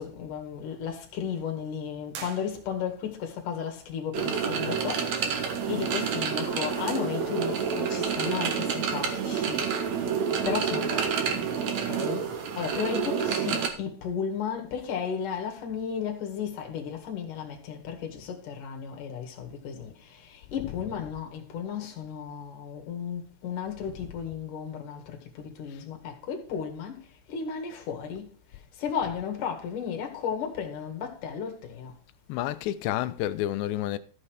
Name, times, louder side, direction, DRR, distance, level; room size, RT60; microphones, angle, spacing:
voice 1, 0.0-9.9 10.4-11.5 11.8-28.3 28.7-31.9, left 7 dB, 55° left, 3.1 m, -34 dB
sound 1, 2.1-3.1, right 7 dB, 80° right, 3.8 m, -44 dB
sound 2, 4.1-13.7, right 6 dB, 65° right, 1.8 m, -28 dB
voice 2, 20.6-20.9 24.0-24.1 25.7-25.8 32.3-34.0, left 13 dB, 80° left, 2.9 m, -30 dB
14.5 x 5.7 x 4.9 m
omnidirectional pair, 5.1 m